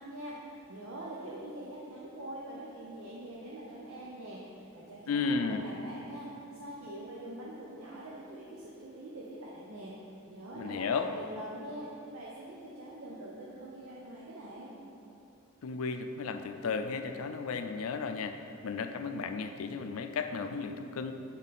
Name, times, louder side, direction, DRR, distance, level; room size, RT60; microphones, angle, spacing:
voice 1, 0.0-9.9 10.3-14.8, right 1 dB, 85° right, -5 dB, 0.7 m, -44 dB
voice 2, 5.1-5.7 10.5-11.1 15.6-18.4 18.6-21.1, left 5 dB, 90° left, 7 dB, 0.4 m, -34 dB
7.4 x 3.9 x 4.0 m, 2.8 s
head